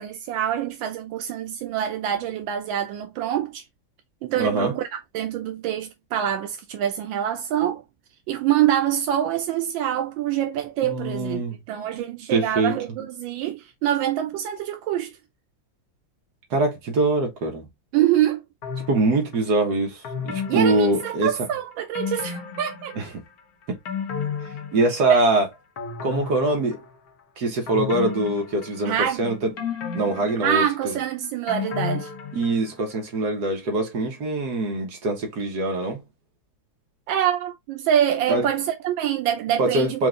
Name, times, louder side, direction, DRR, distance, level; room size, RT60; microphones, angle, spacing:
voice 1, 0.0-3.6 4.2-7.8 8.3-11.4 11.7-15.2 17.9-18.4 20.5-23.0 25.1-25.2 28.8-29.4 30.4-32.1 37.1-40.0, right 11 dB, 85° right, 1.4 m, -25 dB
voice 2, 4.4-4.7 10.8-11.6 12.3-12.7 16.5-17.7 18.9-21.3 23.0-23.1 23.7-23.8 24.7-25.5 26.0-26.8 27.4-29.5 29.9-31.0 32.3-36.0 38.3-38.5 39.6-40.1, right 2 dB, 60° right, 1.8 m, -23 dB
sound 1, 18.6-19.4 20.0-21.5 21.9-23.3 23.6-25.3 25.8-27.1 27.7-29.1 29.6-32.8 33.1-33.2, left 7 dB, 55° left, 1.3 m, -33 dB
4.8 x 2.6 x 3.7 m
omnidirectional pair, 2.1 m